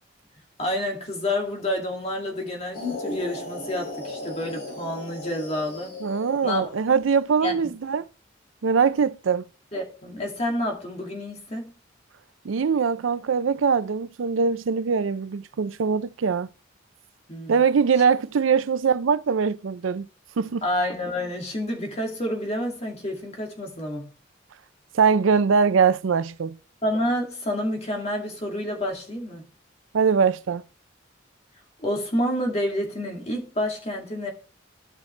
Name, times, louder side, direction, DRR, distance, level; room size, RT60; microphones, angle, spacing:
voice 1, 0.6-6.0 6.4-6.7 7.4-7.7 9.7-11.7 17.3-17.6 20.6-24.1 26.8-29.4 31.8-34.3, left 1 dB, 35° left, 2.3 m, -29 dB
sound 1, 2.7-6.7, left 2 dB, 55° left, 5.2 m, -35 dB
voice 2, 6.0-8.0 8.6-9.5 12.4-16.5 17.5-20.1 20.4-20.7 24.9-26.6 29.9-30.6, right 6 dB, 85° right, 0.5 m, -22 dB
12.5 x 5.8 x 3.2 m
head